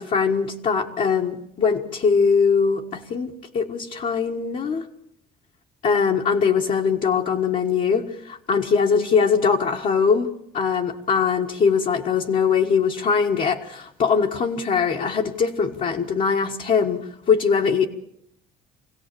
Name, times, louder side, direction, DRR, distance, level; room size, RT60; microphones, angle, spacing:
voice 1, 0.0-4.9 5.8-10.3 10.5-17.9, left 6 dB, 50° left, -1 dB, 1.6 m, -21 dB
25.5 x 17.0 x 6.9 m, 0.73 s
cardioid pair, 110°, 17 cm